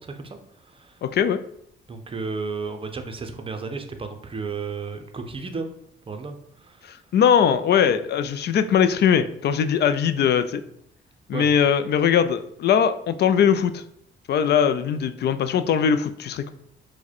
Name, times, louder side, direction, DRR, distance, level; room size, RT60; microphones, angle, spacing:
voice 1, 0.0-1.0 1.9-5.7 6.1-7.0 11.3-11.5, right 4 dB, 25° right, 6 dB, 0.6 m, -33 dB
voice 2, 1.0-1.4 6.8-10.6 11.3-13.8 14.3-16.5, left 8 dB, 55° left, 11 dB, 0.4 m, -20 dB
4.8 x 2.2 x 4.2 m, 0.70 s
cardioid pair, 90°, 20 cm